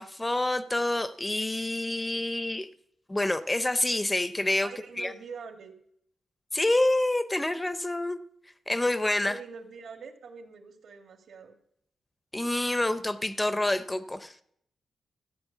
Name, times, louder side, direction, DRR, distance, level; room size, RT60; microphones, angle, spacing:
voice 1, 0.0-2.7 3.1-4.7 5.0-5.1 6.5-8.2 8.7-9.4 12.3-14.3, left 1 dB, 10° left, 12 dB, 0.5 m, -27 dB
voice 2, 4.6-5.7 9.2-11.5, right 5 dB, 75° right, 4 dB, 2.0 m, -44 dB
14.0 x 8.6 x 8.1 m, 0.73 s
wide cardioid pair, 165°, 0 cm